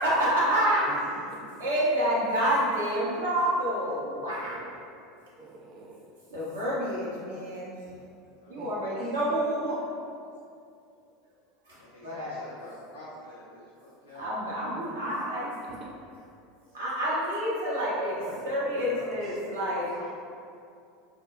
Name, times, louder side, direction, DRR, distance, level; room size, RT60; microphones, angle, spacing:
voice 1, 0.0-1.0 1.6-4.5 6.3-7.9 8.5-9.8 11.7-12.3 14.2-15.5 16.7-19.9, equal, 80° right, -8 dB, 0.8 m, -28 dB
voice 2, 1.1-1.5 4.4-4.6 5.4-6.0 8.5-8.8 14.7-15.9 18.2-19.4, right 1 dB, 45° right, -1 dB, 0.4 m, -43 dB
voice 3, 8.4-9.1 11.8-14.3 20.0-20.1, left 1 dB, 90° left, -7 dB, 0.3 m, -48 dB
3.3 x 2.0 x 2.3 m, 2.4 s
hypercardioid pair, 85°, 0 cm